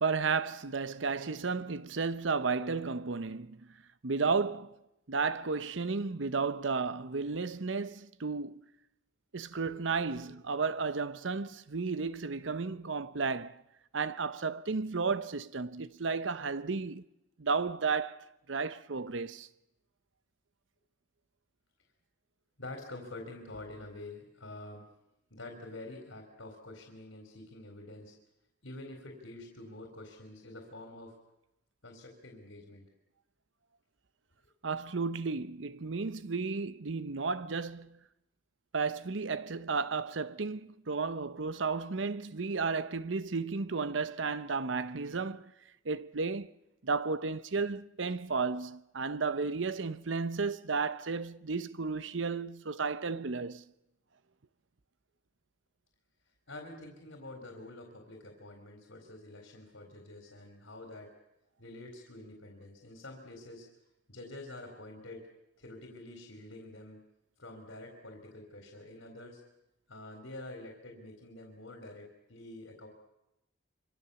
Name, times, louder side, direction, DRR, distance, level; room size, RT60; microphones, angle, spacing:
voice 1, 0.0-3.7 4.0-4.8 5.1-8.7 9.3-13.6 13.9-17.0 17.4-19.5 34.6-38.0 38.7-45.5 45.8-46.5 46.8-53.7, right 4 dB, 75° right, 0.8 m, -33 dB
voice 2, 9.7-10.3 22.6-24.9 25.3-28.2 28.6-31.2 31.8-32.9 56.5-61.1 61.6-63.7 64.1-65.3 65.6-67.0 67.4-69.4 69.9-72.9, left 2 dB, 90° left, 4.2 m, -47 dB
25.5 x 25.0 x 7.0 m
head